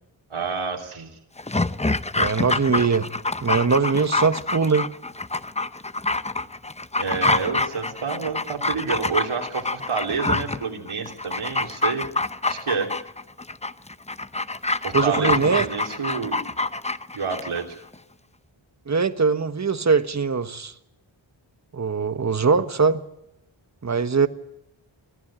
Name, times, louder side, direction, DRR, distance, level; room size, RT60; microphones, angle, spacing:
voice 1, 0.3-1.2 7.0-12.1 12.4-12.9 14.8-16.4 17.1-17.8, right 5 dB, 85° right, 3.2 m, -29 dB
Dog, 1.4-17.6 17.9-18.0, left 2 dB, 15° left, 0.8 m, -26 dB
voice 2, 2.2-3.1 3.4-4.9 14.9-15.6 18.9-20.7 21.7-23.0 23.8-24.3, right 5 dB, 35° right, 1.3 m, -21 dB
24.5 x 15.5 x 9.0 m
wide cardioid pair, 85°, 48 cm